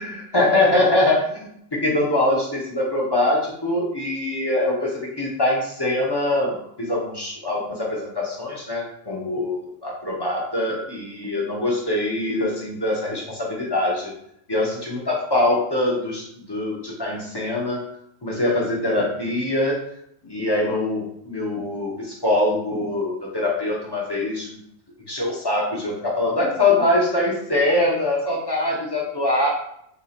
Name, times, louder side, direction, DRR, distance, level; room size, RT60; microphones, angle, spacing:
voice 1, 0.0-6.5 6.8-14.1 14.5-17.8 18.2-19.8 20.2-24.6 25.1-29.5, left 2 dB, 25° left, -3 dB, 0.6 m, -23 dB
2.8 x 2.7 x 4.1 m, 0.72 s
omnidirectional pair, 1.3 m